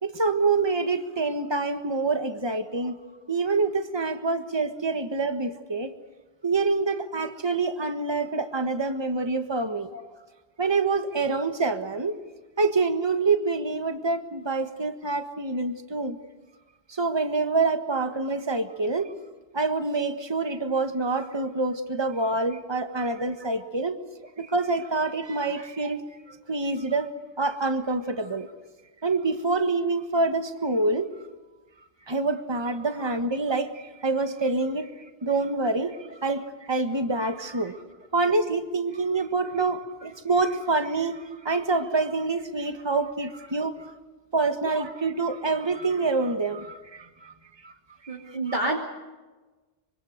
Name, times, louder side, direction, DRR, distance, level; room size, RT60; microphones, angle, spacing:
voice 1, 0.0-3.0 3.3-5.9 6.4-9.9 10.6-12.2 12.6-16.2 16.9-19.1 19.5-24.0 24.4-26.0 26.3-27.1 27.4-28.5 29.0-31.1 32.1-34.9 35.2-37.8 38.1-43.9 44.3-47.3 47.6-47.7 48.0-48.4, right 3 dB, 25° right, 8 dB, 1.5 m, -26 dB
voice 2, 11.0-11.3 23.2-23.6 32.9-33.1 37.6-37.7 39.5-39.6 44.7-44.9 48.1-48.8, right 2 dB, 50° right, -1 dB, 3.1 m, -32 dB
25.5 x 25.0 x 6.6 m, 1.2 s
omnidirectional pair, 1.0 m